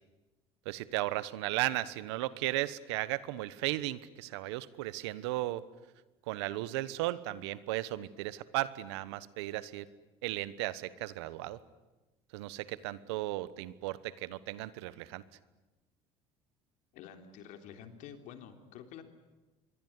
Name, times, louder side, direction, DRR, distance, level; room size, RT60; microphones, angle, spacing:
voice 1, 0.6-5.6 6.3-9.9 10.2-11.6 12.3-15.2, right 16 dB, 90° right, 17 dB, 1.2 m, -35 dB
voice 2, 16.9-19.0, left 8 dB, 70° left, 6 dB, 3.5 m, -49 dB
25.5 x 23.0 x 9.7 m, 1.1 s
supercardioid pair, 95°, 14 cm